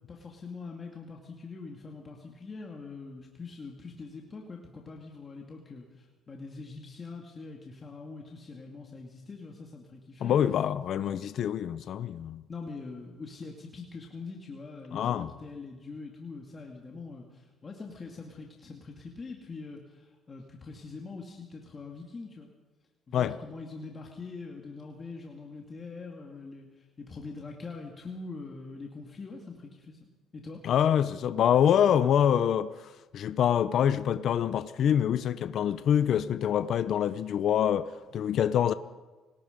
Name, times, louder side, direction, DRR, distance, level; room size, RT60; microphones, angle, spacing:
voice 1, 0.1-10.4 12.5-22.5 23.1-30.1 30.3-30.6, left 4 dB, 25° left, 2.2 m, -43 dB
voice 2, 10.2-12.4 14.9-15.3 23.1-23.4 30.6-38.7, left 9 dB, 55° left, 0.7 m, -26 dB
28.5 x 18.5 x 5.2 m
cardioid pair, 140°, 0 cm